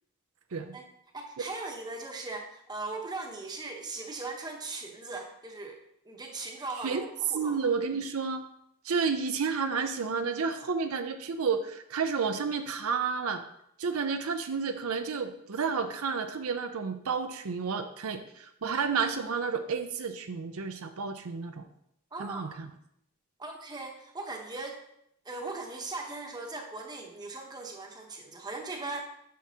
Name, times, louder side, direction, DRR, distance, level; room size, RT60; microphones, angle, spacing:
voice 1, 1.1-5.8 6.0-7.6 22.1-22.4 23.4-24.8 25.2-29.0, right 3 dB, 20° right, 2 dB, 1.0 m, -39 dB
voice 2, 7.3-8.4 8.8-13.4 13.8-21.7 22.2-22.7, right 5 dB, 75° right, 7 dB, 0.6 m, -31 dB
9.3 x 6.2 x 2.8 m, 0.74 s
head